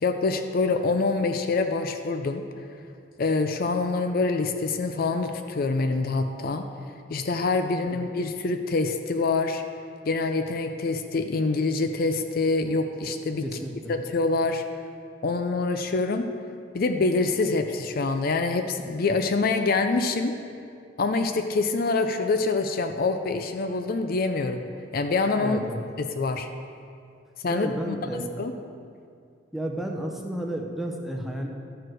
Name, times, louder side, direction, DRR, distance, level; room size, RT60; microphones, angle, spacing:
voice 1, 0.0-2.4 3.2-6.6 7.1-9.6 10.1-13.4 13.9-14.6 15.2-16.3 16.7-20.3 21.0-24.6 24.9-25.6 26.0-26.5 27.4-28.5, left 3 dB, 50° left, 7 dB, 0.4 m, -25 dB
voice 2, 13.4-13.9 25.4-25.8 27.5-28.3 29.5-31.5, right 1 dB, ahead, 1 dB, 0.7 m, -32 dB
12.0 x 4.7 x 6.2 m, 2.3 s
head